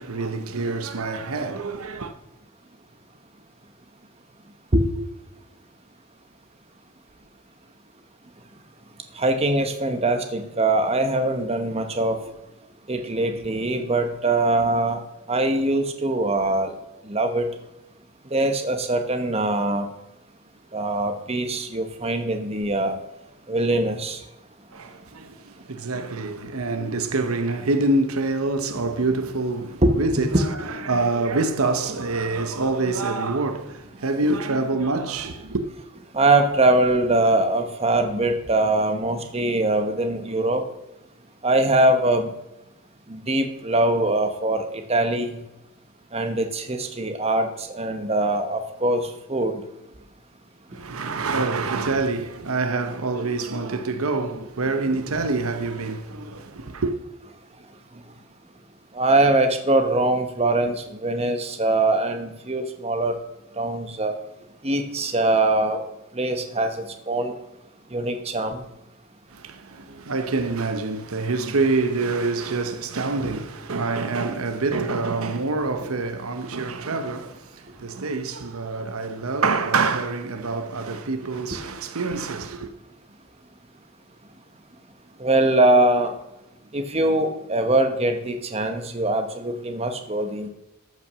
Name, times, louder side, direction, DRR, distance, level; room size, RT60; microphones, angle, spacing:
voice 1, 0.0-2.1 24.7-35.7 50.7-56.9 69.3-82.7, right 3 dB, 85° right, 0.9 m, -26 dB
voice 2, 9.1-12.2 12.9-15.0 15.3-16.7 17.1-17.5 18.3-19.9 20.7-23.0 23.5-24.2 29.8-30.0 36.1-40.6 41.4-42.3 43.1-45.4 46.1-49.6 58.9-63.1 63.6-64.1 64.6-65.8 66.1-67.3 67.9-68.6 81.5-81.6 85.2-86.1 86.7-90.5, right 2 dB, 30° right, 1.0 m, -22 dB
13.5 x 5.9 x 6.2 m
head